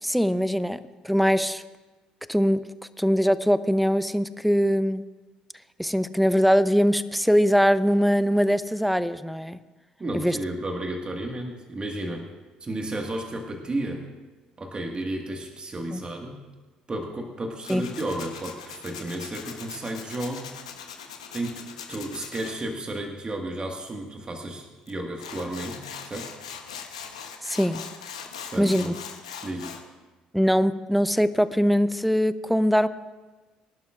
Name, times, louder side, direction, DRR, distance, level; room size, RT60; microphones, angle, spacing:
voice 1, 0.0-1.6 2.3-2.6 3.0-5.0 5.8-9.6 10.1-10.4 15.9-16.0 17.7-17.8 27.4-27.8 28.6-28.9 30.3-32.9, equal, ahead, 14 dB, 0.7 m, -22 dB
voice 2, 10.0-12.2 12.6-14.0 14.6-16.4 16.9-20.5 21.3-26.3 28.5-28.9 29.4-29.8, right 1 dB, 30° right, 2 dB, 1.7 m, -33 dB
Tools, 17.6-22.5 24.9-25.0 25.2-29.8, left 7 dB, 85° left, 1.0 m, -40 dB
25.0 x 11.5 x 2.5 m, 1.2 s
hypercardioid pair, 55°, 3 cm